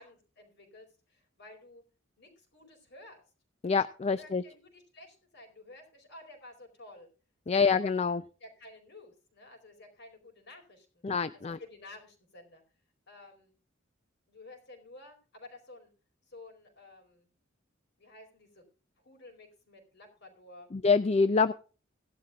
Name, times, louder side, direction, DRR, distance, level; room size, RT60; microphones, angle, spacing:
voice 1, 0.0-1.8 2.2-3.2 4.1-7.1 8.4-11.0 11.3-12.6 13.1-13.5 14.3-15.9 16.3-17.3 18.0-18.6 19.0-20.7, left 2 dB, 60° left, 4 dB, 4.5 m, -52 dB
voice 2, 3.6-4.4 7.5-8.2 11.0-11.6 20.7-21.5, left 4 dB, 30° left, 13 dB, 0.4 m, -26 dB
17.0 x 11.5 x 2.4 m, 0.35 s
head